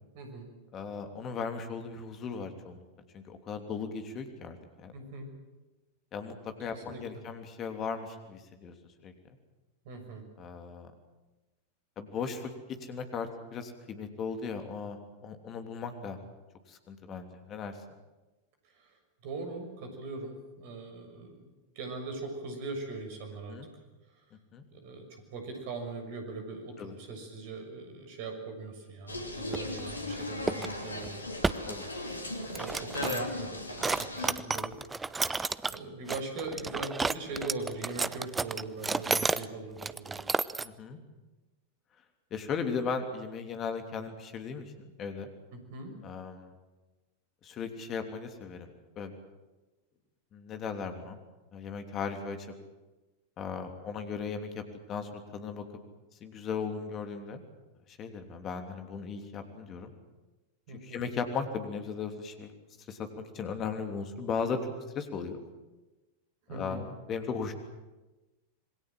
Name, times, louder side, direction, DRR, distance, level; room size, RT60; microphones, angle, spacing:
voice 1, 0.1-0.5 4.9-5.3 6.7-7.2 9.8-10.2 18.7-18.9 19.2-21.5 21.7-23.6 24.7-31.2 31.7-31.8 32.5-33.5 33.8-34.7 35.1-40.2 45.5-45.9 60.7-61.0 66.5-66.8, right 3 dB, 50° right, 5 dB, 6.5 m, -41 dB
voice 2, 0.7-2.8 3.1-4.9 6.1-8.7 9.0-9.1 10.4-10.9 12.0-12.5 12.8-16.2 16.7-17.7 23.5-23.7 24.5-24.6 26.8-26.9 31.7-31.8 40.6-41.0 42.3-45.3 46.0-46.5 47.4-48.7 49.0-49.1 50.3-51.2 51.5-52.4 53.4-54.6 54.9-55.6 56.2-57.4 57.9-59.9 60.7-62.5 62.9-65.4 66.5-67.5, left 5 dB, 30° left, 7 dB, 3.1 m, -37 dB
sound 1, 29.1-34.3, left 1 dB, 80° left, 2.9 m, -37 dB
sound 2, 29.5-29.8 30.5-30.7 31.0-31.1 31.4-31.6 32.3-33.3 33.8-35.8 36.1-39.4 39.8-40.7, right 4 dB, 10° right, 0.7 m, -31 dB
26.5 x 22.0 x 7.7 m, 1.1 s
figure-of-eight pair, 90°, 0 cm